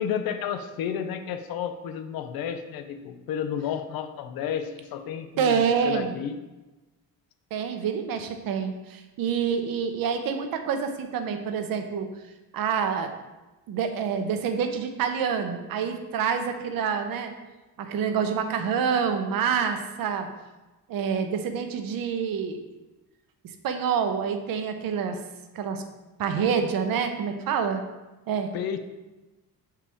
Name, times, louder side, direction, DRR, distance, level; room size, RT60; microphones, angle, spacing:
voice 1, 0.0-6.4 28.5-28.8, left 8 dB, 75° left, 9 dB, 0.6 m, -31 dB
voice 2, 5.4-6.2 7.5-12.1 12.5-13.1 13.7-17.3 17.8-20.3 20.9-22.6 23.4-25.2 25.5-25.8 26.2-27.8 28.3-28.5, right 6 dB, 65° right, 6 dB, 0.8 m, -27 dB
7.1 x 4.6 x 3.5 m, 1.1 s
cardioid pair, 140°, 37 cm